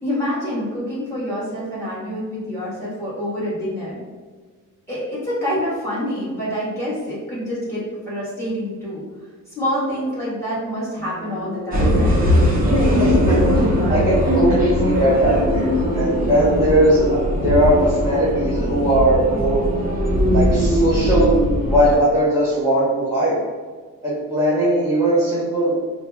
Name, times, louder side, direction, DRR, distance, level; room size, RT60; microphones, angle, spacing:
voice 1, 0.0-4.0 4.9-9.0 9.5-12.2, equal, 10° left, -10 dB, 1.4 m, -26 dB
sound 1, 11.0-20.6, equal, 50° left, 0.8 m, -33 dB
sound 2, 11.7-21.9, equal, 30° right, 0.7 m, -19 dB
voice 2, 13.0-13.4 13.9-19.7 20.3-21.4 21.7-23.4 24.0-25.7, right 1 dB, 10° right, -12 dB, 1.2 m, -19 dB
4.9 x 2.2 x 2.3 m, 1.4 s
wide cardioid pair, 160°, 32 cm